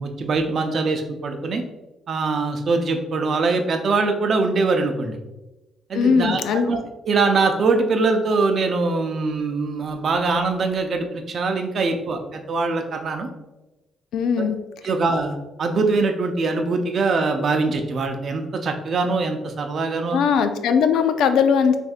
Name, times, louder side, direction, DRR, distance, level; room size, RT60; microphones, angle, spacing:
voice 1, 0.0-1.6 2.1-5.2 5.9-6.4 6.7-6.8 7.1-13.3 14.4-14.5 14.8-20.2, right 3 dB, 55° right, 4 dB, 0.6 m, -22 dB
voice 2, 5.9-6.7 14.1-14.6 20.1-21.8, left 6 dB, 80° left, 9 dB, 0.4 m, -19 dB
6.2 x 2.6 x 2.4 m, 1.0 s
cardioid pair, 90°, 0 cm